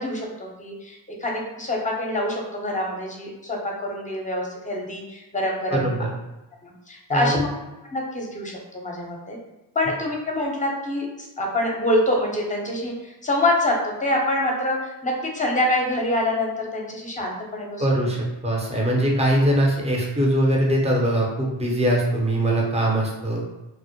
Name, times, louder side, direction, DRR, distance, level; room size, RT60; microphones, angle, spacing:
voice 1, 0.0-5.9 6.6-7.5 7.8-9.4 9.7-18.0, left 1 dB, 15° left, -1 dB, 0.7 m, -26 dB
voice 2, 5.7-6.1 7.1-7.4 17.8-23.4, right 1 dB, 15° right, -2 dB, 0.7 m, -22 dB
2.1 x 2.0 x 2.8 m, 1.0 s
cardioid pair, 45°, 44 cm